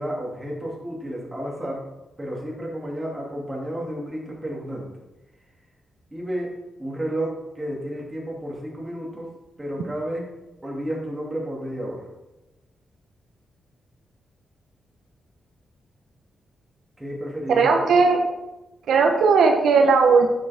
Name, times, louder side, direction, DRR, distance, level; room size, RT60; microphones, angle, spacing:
voice 1, 0.0-1.9 2.2-4.9 6.1-6.5 6.8-9.3 9.6-10.3 10.6-12.1 17.0-18.0, right 1 dB, 15° right, -3 dB, 2.6 m, -31 dB
voice 2, 17.5-18.2 18.9-20.3, right 4 dB, 85° right, 3 dB, 1.0 m, -17 dB
9.7 x 7.0 x 3.6 m, 1.0 s
cardioid pair, 115°, 0 cm